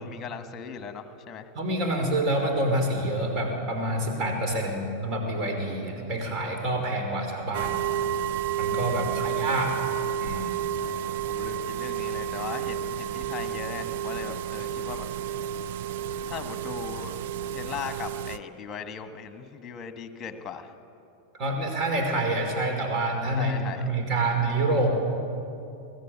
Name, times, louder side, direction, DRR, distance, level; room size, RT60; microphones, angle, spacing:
voice 1, 0.0-1.5 4.5-4.9 8.8-9.4 10.8-15.1 16.3-17.2 17.5-20.7 23.3-24.3, left 6 dB, 25° left, 8 dB, 1.7 m, -39 dB
voice 2, 1.6-7.8 8.6-9.8 10.2-10.5 21.4-24.9, right 1 dB, 35° right, 2 dB, 5.2 m, -27 dB
sound 1, 7.5-18.4, right 9 dB, 55° right, 0.6 m, -31 dB
23.5 x 16.5 x 8.6 m, 2.7 s
figure-of-eight pair, 90°, 0 cm